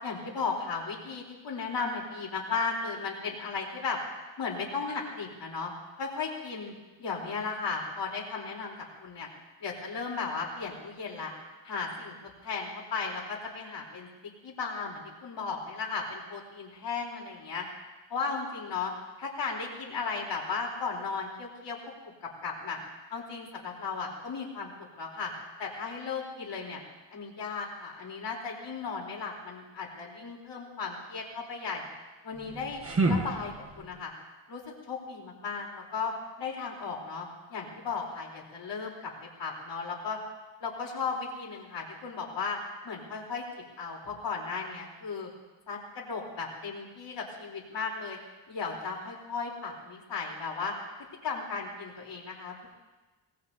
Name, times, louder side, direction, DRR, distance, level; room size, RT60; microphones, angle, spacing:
voice 1, 0.0-4.0 4.4-5.7 6.0-6.7 7.0-8.7 9.0-9.3 9.6-11.3 11.6-12.1 12.4-14.1 14.4-17.7 18.1-18.9 19.2-21.8 22.2-22.8 23.1-24.7 25.0-25.3 25.6-26.8 27.1-31.8 32.2-32.8 33.1-34.1 34.5-36.1 36.4-39.1 39.4-40.2 40.6-42.6 42.8-43.4 43.8-45.3 45.7-48.2 48.5-50.8 51.2-52.7, left 5 dB, 60° left, -1 dB, 3.8 m, -35 dB
sound 1, 32.3-34.0, right 2 dB, 30° right, 1.5 m, -30 dB
24.5 x 18.5 x 2.8 m, 1.2 s
cardioid pair, 110°, 47 cm